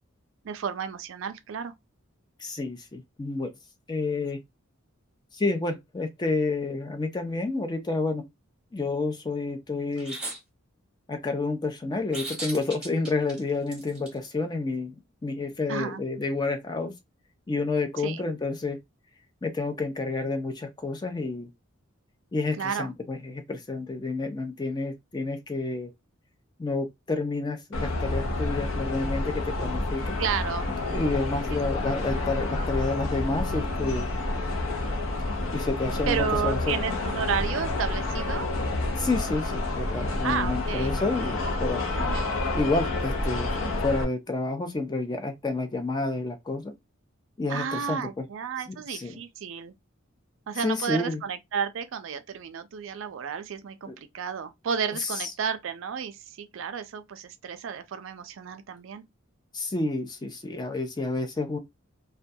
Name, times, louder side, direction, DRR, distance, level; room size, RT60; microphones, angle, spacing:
voice 1, 0.4-1.7 15.7-16.0 18.0-18.2 22.5-22.9 30.2-30.7 31.5-31.8 36.1-38.5 40.2-41.0 42.0-42.3 47.5-49.7 50.5-59.0, right 7 dB, 65° right, 0.4 m, -32 dB
voice 2, 2.4-3.5 3.9-4.4 5.3-8.2 8.7-10.2 11.1-15.0 15.2-16.9 17.5-18.8 19.4-21.5 22.3-25.9 26.6-30.2 30.9-34.1 35.5-37.0 39.0-41.9 42.5-46.7 47.4-48.3 48.7-49.2 50.6-51.2 53.9-54.0 55.0-55.1 59.5-61.6, left 3 dB, 20° left, 0.4 m, -29 dB
sound 1, 10.0-10.4 12.1-14.1, right 2 dB, 5° right, 1.0 m, -36 dB
sound 2, 27.7-44.0, left 2 dB, 75° left, 0.5 m, -29 dB
2.2 x 2.2 x 2.6 m
head